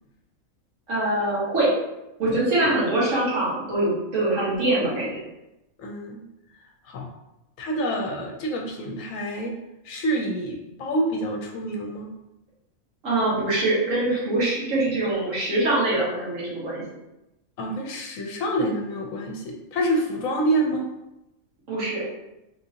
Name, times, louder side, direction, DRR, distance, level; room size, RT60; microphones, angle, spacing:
voice 1, 0.9-1.7 2.2-5.2 13.0-16.8 21.7-22.0, right 2 dB, 65° right, -8 dB, 1.7 m, -23 dB
voice 2, 5.8-6.2 6.9-7.1 7.6-9.5 9.8-12.1 17.6-20.8, right 1 dB, 75° left, 1 dB, 1.0 m, -27 dB
3.7 x 2.6 x 2.7 m, 0.91 s
omnidirectional pair, 1.5 m